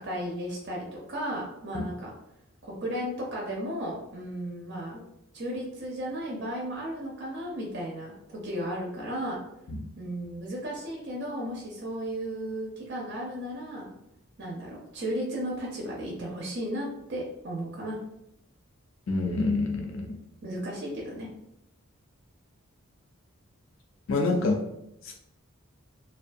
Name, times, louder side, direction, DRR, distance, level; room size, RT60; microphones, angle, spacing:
voice 1, 0.0-2.1 2.6-5.0 5.3-9.4 10.0-13.9 14.4-18.0 20.4-21.3, equal, 50° right, -3 dB, 0.5 m, -34 dB
voice 2, 19.1-20.1 24.1-24.6 25.0-25.1, left 3 dB, 65° left, 1 dB, 0.4 m, -26 dB
2.5 x 2.3 x 2.5 m, 0.82 s
head